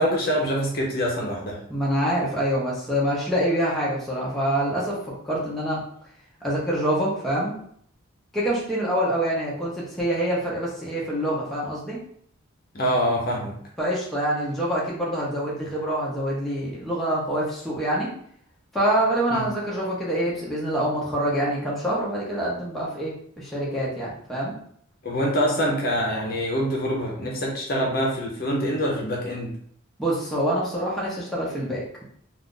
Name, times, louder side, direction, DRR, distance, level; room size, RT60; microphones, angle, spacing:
voice 1, 0.0-1.6 12.7-13.5 19.3-19.4 25.0-29.5, equal, 45° left, -2 dB, 0.7 m, -25 dB
voice 2, 1.7-5.0 5.2-5.8 6.4-7.6 8.3-12.0 13.8-18.1 18.7-24.5 30.0-32.0, right 1 dB, ahead, -7 dB, 0.7 m, -26 dB
2.5 x 2.4 x 3.7 m, 0.64 s
head